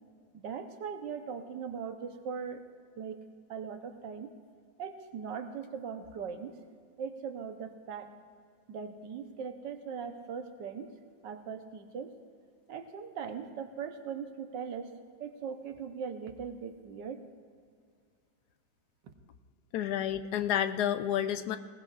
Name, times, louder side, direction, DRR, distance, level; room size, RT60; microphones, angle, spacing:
voice 1, 0.3-2.6 3.0-3.2 3.5-4.3 4.8-6.5 7.0-8.1 8.7-10.9 11.2-12.1 12.7-14.9 15.2-17.2 19.0-19.1, right 6 dB, 80° right, 6 dB, 1.6 m, -40 dB
voice 2, 19.7-21.6, left 10 dB, 70° left, 10 dB, 1.1 m, -30 dB
20.0 x 18.0 x 2.5 m, 2.1 s
omnidirectional pair, 1.9 m